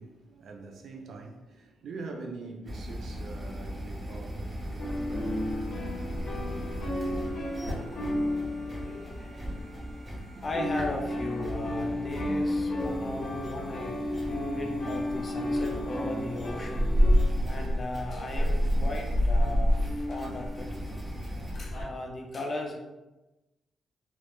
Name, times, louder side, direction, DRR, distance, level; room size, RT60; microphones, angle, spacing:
voice 1, 0.0-5.7 8.7-9.4 9.7-10.6, right 3 dB, 65° right, 0.3 m, -45 dB
sound 1, 2.6-21.5, equal, 15° right, 0.6 m, -40 dB
sound 2, 4.8-10.1 10.4-21.8, left 1 dB, 75° left, 0.7 m, -30 dB
voice 2, 10.4-14.0 14.5-17.0 17.4-20.7 21.6-22.8, left 2 dB, 30° left, 0.4 m, -37 dB
2.2 x 2.1 x 2.9 m
wide cardioid pair, 150°, 0 cm